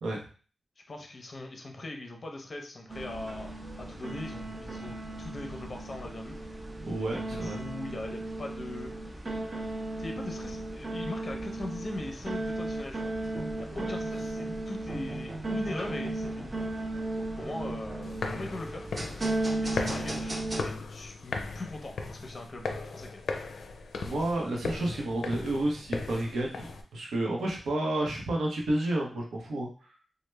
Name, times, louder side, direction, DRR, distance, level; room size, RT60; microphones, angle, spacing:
voice 1, 0.9-6.4 6.9-8.9 10.0-13.1 13.6-16.5 17.1-18.9 19.6-23.2, left 2 dB, 35° left, 3 dB, 0.6 m, -41 dB
sound 1, 2.9-20.6, right 2 dB, 25° right, 0.5 m, -35 dB
voice 2, 6.8-7.6 13.7-13.9 24.0-29.7, right 1 dB, 90° right, -1 dB, 0.7 m, -31 dB
sound 2, 18.0-26.8, left 4 dB, 90° left, 0.4 m, -37 dB
3.2 x 2.1 x 3.2 m, 0.39 s
wide cardioid pair, 125°, 0 cm